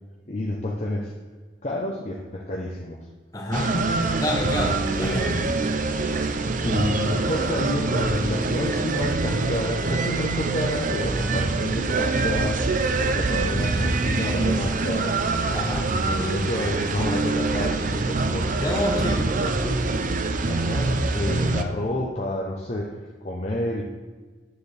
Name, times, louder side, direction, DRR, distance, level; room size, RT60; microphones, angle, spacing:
voice 1, 0.3-1.1 1.6-3.1 3.5-4.0 5.0-5.5 6.6-12.7 13.1-15.2 16.0-18.6 18.9-19.7 20.4-23.8, left 1 dB, 35° left, -1 dB, 0.7 m, -29 dB
voice 2, 3.3-3.7 4.2-5.3 15.5-15.9 18.6-19.3 20.5-21.0, left 1 dB, 20° left, 0 dB, 1.2 m, -27 dB
sound 1, 3.5-21.6, right 3 dB, 40° right, 0.5 m, -25 dB
9.5 x 6.9 x 3.3 m, 1.4 s
head